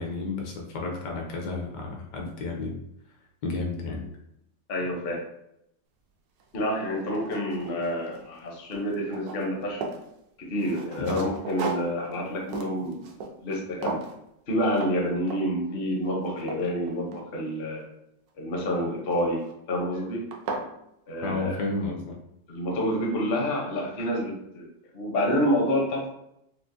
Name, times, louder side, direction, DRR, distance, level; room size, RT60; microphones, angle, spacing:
voice 1, 0.0-2.8 3.4-4.1 11.0-11.2 21.2-22.2, left 3 dB, 75° left, 0 dB, 1.3 m, -32 dB
voice 2, 4.7-5.2 6.5-9.8 10.4-13.1 13.4-14.0 14.5-17.8 18.4-19.4 19.7-20.3 21.1-21.5 22.5-24.7 24.9-26.1, equal, 50° left, -1 dB, 0.7 m, -28 dB
sound 1, 6.4-6.5 7.0-8.4 8.7-10.1 10.6-13.6 13.8-14.2 14.7-15.0 15.3-15.6 16.1-17.6 19.1-19.5 20.0-20.1 20.3-20.7, right 4 dB, 70° right, 1.0 m, -36 dB
4.6 x 2.0 x 2.5 m, 0.79 s
omnidirectional pair, 1.9 m